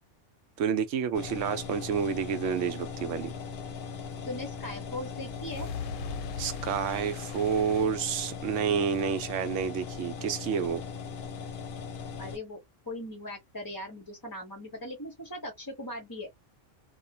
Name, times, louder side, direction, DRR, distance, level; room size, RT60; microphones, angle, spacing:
voice 1, 0.6-3.3 6.4-10.8, right 7 dB, 75° right, 0.9 m, -29 dB
sound 1, 1.1-12.4, left 6 dB, 60° left, 0.8 m, -39 dB
voice 2, 4.2-5.7 12.2-12.6 12.9-16.3, left 1 dB, 25° left, 0.5 m, -39 dB
sound 2, 5.0-8.6, left 6 dB, 85° left, 0.9 m, -40 dB
2.4 x 2.2 x 2.6 m
omnidirectional pair, 1.3 m